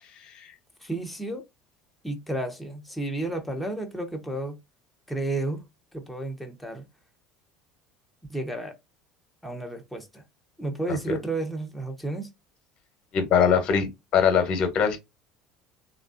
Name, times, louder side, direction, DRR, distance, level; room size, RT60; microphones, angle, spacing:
voice 1, 0.8-1.4 2.0-4.6 5.1-5.6 5.9-6.8 8.3-8.7 9.4-10.2 10.6-12.3, right 2 dB, 5° left, 1.0 m, -32 dB
voice 2, 13.1-13.9 14.1-15.0, left 7 dB, 50° left, 1.1 m, -21 dB
3.1 x 2.4 x 2.6 m
hypercardioid pair, 75°, 2 cm